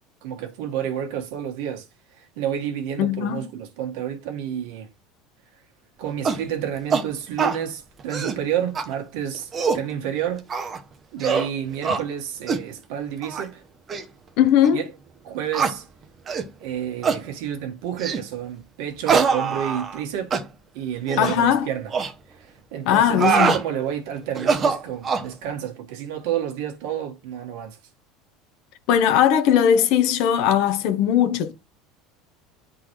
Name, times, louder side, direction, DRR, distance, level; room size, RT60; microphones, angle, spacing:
voice 1, 0.2-1.9 2.1-4.9 6.0-10.4 11.1-13.6 14.7-14.9 15.2-15.8 16.6-20.4 20.7-21.9 22.3-27.8, right 9 dB, 65° right, 1.5 m, -30 dB
voice 2, 3.0-3.5 14.4-14.8 21.2-21.7 22.9-23.5 28.9-31.5, left 9 dB, 50° left, 0.8 m, -19 dB
sound 1, 6.2-6.4 6.9-7.1 7.4-7.6 8.0-8.4 8.7-8.9 9.3-9.8 10.5-10.8 11.2-11.5 11.8-12.0 12.5-12.6 13.2-13.5 13.9-14.0 14.6-14.7 15.5-15.7 16.3-16.5 17.0-17.2 18.0-18.2 19.1-20.0 20.3-20.4 21.1-21.4 21.9-22.1 22.9-23.6 24.3-25.3, right 5 dB, 20° right, 0.6 m, -23 dB
10.0 x 3.8 x 3.1 m
cardioid pair, 180°, 0 cm